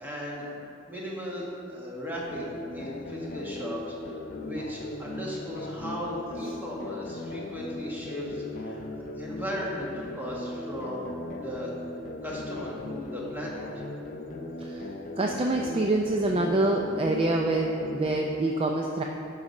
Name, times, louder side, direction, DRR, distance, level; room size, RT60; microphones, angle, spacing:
voice 1, 0.0-11.7 12.2-13.8, equal, 10° right, -5 dB, 1.3 m, -37 dB
sound 1, 2.3-18.3, left 2 dB, 45° left, 0.5 m, -38 dB
voice 2, 14.6-19.0, right 2 dB, 30° right, 1 dB, 0.4 m, -26 dB
11.0 x 4.1 x 5.4 m, 2.9 s
head